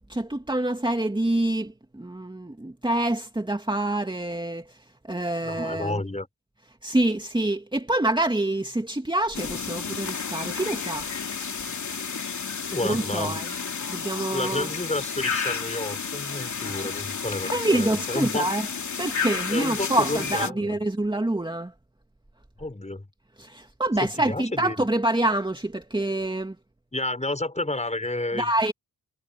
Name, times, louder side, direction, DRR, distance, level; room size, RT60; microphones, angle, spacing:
voice 1, 0.1-4.8 5.1-6.0 6.8-11.1 12.8-13.5 13.9-14.7 17.0-17.1 17.5-18.7 19.0-21.7 23.4-26.6 28.3-28.7, right 1 dB, 15° right, 2.5 m, -26 dB
voice 2, 5.4-6.3 12.6-13.4 14.3-18.5 19.5-20.8 22.6-23.1 24.2-24.7 26.9-28.5, left 2 dB, 20° left, 6.2 m, -30 dB
sound 1, 9.3-20.5, left 6 dB, 50° left, 3.1 m, -31 dB
cardioid pair, 65°, 36 cm